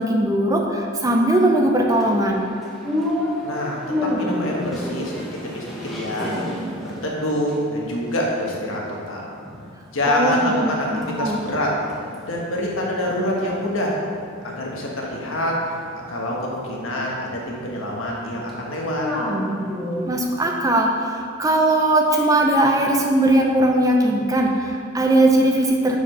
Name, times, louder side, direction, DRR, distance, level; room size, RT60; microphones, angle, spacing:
voice 1, 0.0-2.4 10.0-11.4 20.0-26.0, right 1 dB, 15° right, 1 dB, 0.6 m, -19 dB
sound 1, 1.9-9.0 9.4-10.4 10.7-20.3, left 1 dB, ahead, 1.1 m, -31 dB
voice 2, 3.4-5.1 5.4-5.6 5.9-9.2 9.9-11.7 12.3-13.9 14.4-15.6 16.1-19.1, left 1 dB, 80° left, -2 dB, 1.5 m, -26 dB
6.9 x 4.9 x 5.5 m, 2.3 s
head